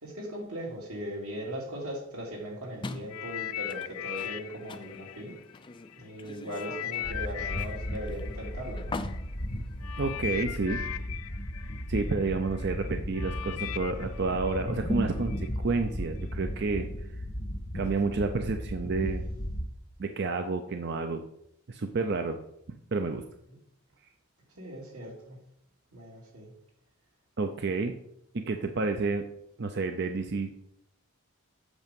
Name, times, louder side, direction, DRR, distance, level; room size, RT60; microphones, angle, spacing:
voice 1, 0.0-5.4 6.0-8.9 24.6-25.4 25.9-26.5, equal, 85° right, -1 dB, 2.8 m, -39 dB
sound 1, 2.8-10.6, left 3 dB, 20° left, 0.4 m, -44 dB
sound 2, 3.1-6.0 6.5-15.5 16.2-16.3, left 12 dB, 85° left, 0.5 m, -39 dB
sound 3, 7.0-19.7, equal, 70° left, 2.1 m, -35 dB
voice 2, 10.0-10.8 11.9-17.2 17.7-19.2 20.0-21.2 21.7-22.4 22.9-23.2 27.4-27.9 28.3-29.2 29.6-30.5, right 3 dB, 50° right, 6 dB, 0.5 m, -30 dB
8.2 x 6.1 x 5.2 m, 0.76 s
head